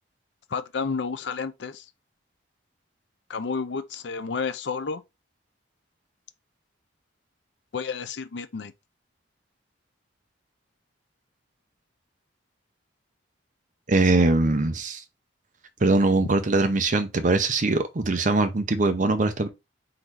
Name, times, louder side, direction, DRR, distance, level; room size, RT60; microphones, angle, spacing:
voice 1, 0.5-1.9 3.3-5.0 7.7-8.7 16.2-16.3, left 5 dB, 65° left, 0.5 m, -31 dB
voice 2, 13.9-15.0 15.8-19.5, right 2 dB, 40° right, 0.6 m, -22 dB
3.8 x 2.7 x 4.6 m
head